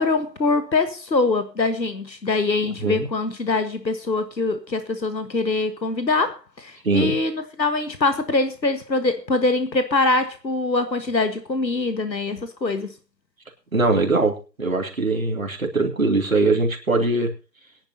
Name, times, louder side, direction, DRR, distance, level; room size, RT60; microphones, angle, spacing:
voice 1, 0.0-12.9, left 3 dB, 90° left, 1.6 m, -23 dB
voice 2, 6.8-7.2 13.7-17.3, right 3 dB, 55° right, 2.9 m, -21 dB
21.0 x 10.5 x 2.8 m
figure-of-eight pair, 170°, 50 cm